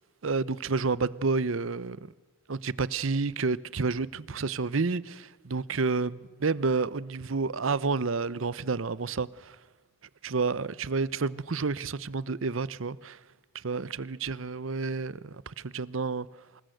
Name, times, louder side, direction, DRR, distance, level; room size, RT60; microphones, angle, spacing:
voice 1, 0.2-2.0 2.5-9.6 10.2-13.2 13.6-16.3, right 4 dB, 80° right, 0.8 m, -30 dB
26.5 x 20.5 x 7.9 m
head